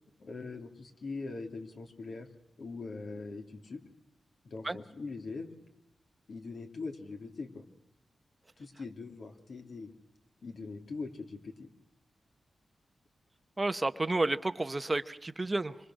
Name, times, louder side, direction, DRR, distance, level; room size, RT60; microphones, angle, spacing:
voice 1, 0.2-2.3 2.6-3.8 4.4-5.5 6.3-7.6 8.6-9.9 10.4-11.7, left 3 dB, 65° left, 4 dB, 3.0 m, -42 dB
voice 2, 13.6-15.8, right 2 dB, 25° right, 11 dB, 0.8 m, -31 dB
25.5 x 25.0 x 6.4 m, 0.82 s
wide cardioid pair, 105°, 0 cm